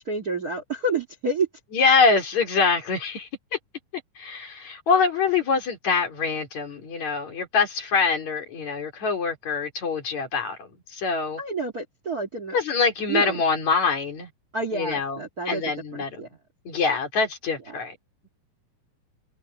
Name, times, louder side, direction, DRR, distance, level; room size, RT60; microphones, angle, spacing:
voice 1, 0.0-1.5 11.4-12.6 13.1-13.4 14.5-15.6 15.9-16.3 17.7-17.8, right 3 dB, 35° right, 1.8 m, -29 dB
voice 2, 1.7-3.6 4.2-11.4 12.5-14.3 14.7-15.2 15.5-16.2 16.6-18.0, left 4 dB, 60° left, 5.1 m, -24 dB
omnidirectional pair, 3.7 m